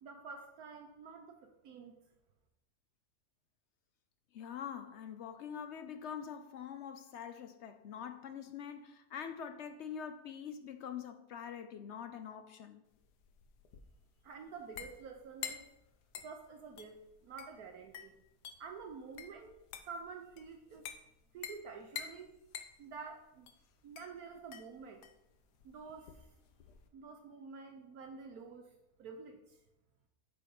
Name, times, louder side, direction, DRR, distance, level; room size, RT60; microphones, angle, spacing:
voice 1, 0.0-1.9 14.2-15.6 16.2-18.1 18.6-19.6 19.9-20.8 21.3-22.4 22.8-23.5 23.8-25.0 25.6-26.2 26.9-28.7 29.0-29.6, right 5 dB, 70° right, 1.2 m, -49 dB
voice 2, 4.3-12.8, left 8 dB, 70° left, 0.7 m, -45 dB
sound 1, 12.9-26.9, left 8 dB, 85° left, 1.4 m, -49 dB
8.5 x 5.0 x 5.3 m
omnidirectional pair, 1.7 m